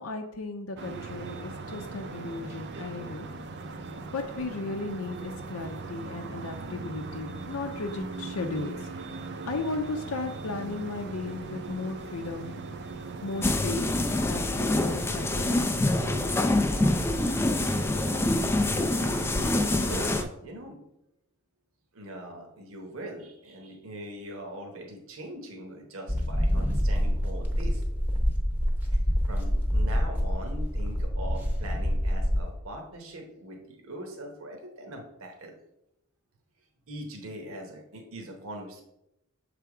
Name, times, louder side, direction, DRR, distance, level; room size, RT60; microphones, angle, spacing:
voice 1, 0.0-3.3 4.1-8.9 9.4-12.6 13.2-13.9 14.2-15.9, left 3 dB, 75° left, 3 dB, 0.6 m, -35 dB
sound 1, 0.8-20.3, right 3 dB, 50° right, 0.5 m, -39 dB
sound 2, 13.4-20.2, left 2 dB, 10° left, 0.3 m, -26 dB
voice 2, 19.8-20.8 21.9-27.8 28.9-29.0 29.2-35.5 36.9-38.8, right 1 dB, 65° right, 2 dB, 1.0 m, -41 dB
sound 3, 26.1-32.5, equal, 10° right, 0.8 m, -26 dB
6.9 x 3.4 x 4.8 m, 0.84 s
head